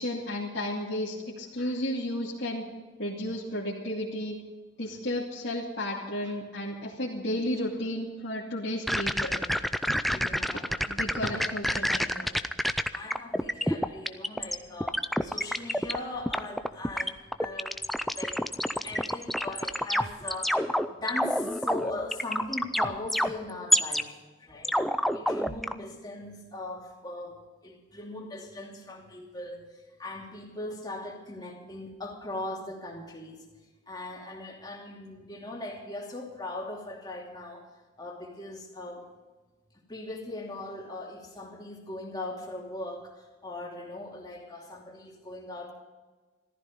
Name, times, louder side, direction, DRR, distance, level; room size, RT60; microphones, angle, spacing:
voice 1, 0.0-2.6 3.0-4.4 4.8-9.4 10.8-12.3, left 1 dB, 60° left, -7 dB, 2.6 m, -33 dB
sound 1, 8.9-14.6 14.8-16.0 16.3-24.0 24.6-25.7, equal, ahead, 0.4 m, -27 dB
voice 2, 10.1-10.6 11.2-11.5 12.9-17.9 18.1-18.5 18.8-24.7 25.1-33.5 33.9-39.1 39.9-45.7, left 2 dB, 20° left, -1 dB, 2.8 m, -39 dB
15.0 x 14.0 x 5.3 m, 1.3 s
head